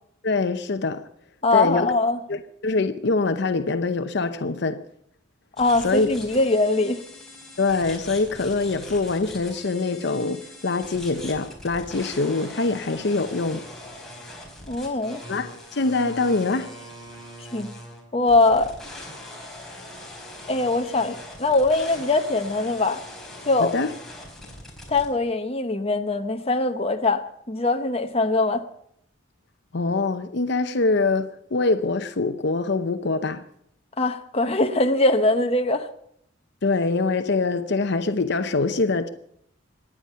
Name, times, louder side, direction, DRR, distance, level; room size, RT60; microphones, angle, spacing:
voice 1, 0.2-1.0 1.5-1.9 2.3-4.8 5.8-6.1 7.6-13.6 15.3-16.7 23.6-23.9 29.7-33.4 36.6-39.1, left 3 dB, 65° left, 0.8 m, -24 dB
voice 2, 1.4-2.2 5.6-7.0 14.7-15.2 17.5-17.7 18.1-18.7 20.5-23.0 23.4-23.8 24.9-28.6 34.0-35.9, left 2 dB, 30° left, 1.0 m, -22 dB
sound 1, 5.6-25.1, left 1 dB, ahead, 4.4 m, -41 dB
25.0 x 10.0 x 5.6 m
head